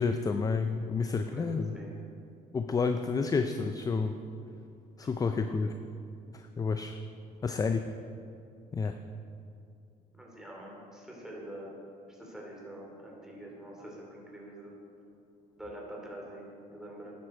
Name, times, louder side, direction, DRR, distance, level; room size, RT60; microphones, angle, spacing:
voice 1, 0.0-1.7 2.5-4.2 5.0-5.7 6.3-7.0 7.4-7.8 8.7-9.0, left 4 dB, 20° left, 7 dB, 0.4 m, -30 dB
voice 2, 1.3-1.9 5.0-5.1 8.8-8.9 10.2-11.7 12.1-14.7 15.5-17.1, right 1 dB, 5° right, -3 dB, 3.0 m, -45 dB
11.5 x 9.6 x 4.4 m, 2.5 s
cardioid pair, 110°, 17 cm